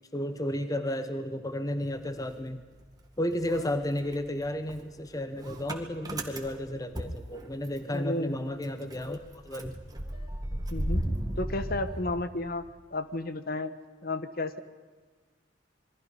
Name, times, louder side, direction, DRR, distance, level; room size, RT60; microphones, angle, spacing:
voice 1, 0.1-2.6 3.2-9.8, left 1 dB, 20° left, 9 dB, 1.0 m, -33 dB
Motor vehicle (road) / Engine starting, 1.8-3.0 3.3-8.0 8.3-8.4 8.6-12.7, right 1 dB, 20° right, 2.1 m, -36 dB
voice 2, 7.9-8.4 10.7-12.6 12.9-13.7 14.0-14.6, left 2 dB, 55° left, 11 dB, 1.2 m, -32 dB
27.5 x 22.5 x 5.5 m, 1.4 s
head